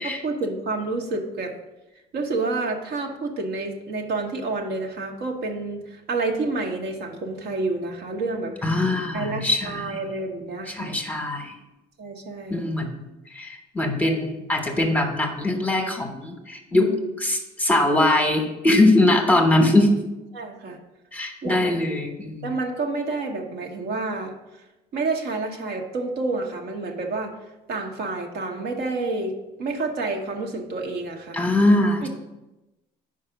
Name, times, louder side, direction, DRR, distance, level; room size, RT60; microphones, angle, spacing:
voice 1, 0.2-1.5 2.1-8.8 9.1-11.0 12.0-12.7 16.7-17.0 20.3-20.8 21.4-21.6 22.4-24.6 24.9-27.4 27.7-29.3 29.6-31.4 32.0-32.1, right 3 dB, 70° right, 3 dB, 1.0 m, -29 dB
voice 2, 8.6-9.9 10.7-11.5 12.5-13.0 13.3-16.9 17.2-19.9 21.1-22.5 31.3-32.1, left 1 dB, 10° left, 3 dB, 1.0 m, -21 dB
4.9 x 4.7 x 5.8 m, 1.0 s
cardioid pair, 110°, 17 cm